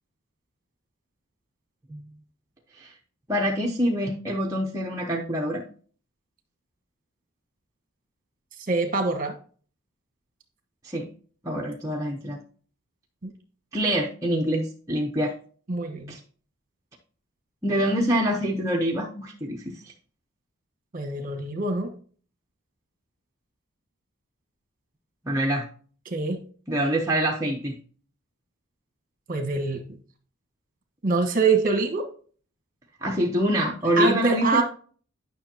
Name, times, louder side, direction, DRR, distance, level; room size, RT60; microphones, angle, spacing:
voice 1, 3.3-5.6 10.8-11.1 11.4-12.4 13.7-15.3 16.1-16.2 17.6-19.6 25.3-25.6 26.7-27.7 33.0-34.6, equal, 15° right, -2 dB, 0.8 m, -25 dB
voice 2, 8.6-9.3 13.2-13.3 15.7-16.1 20.9-21.9 26.1-26.4 29.3-30.0 31.0-32.1 34.0-34.6, right 4 dB, 40° right, 5 dB, 1.3 m, -24 dB
9.8 x 6.0 x 2.8 m, 0.43 s
head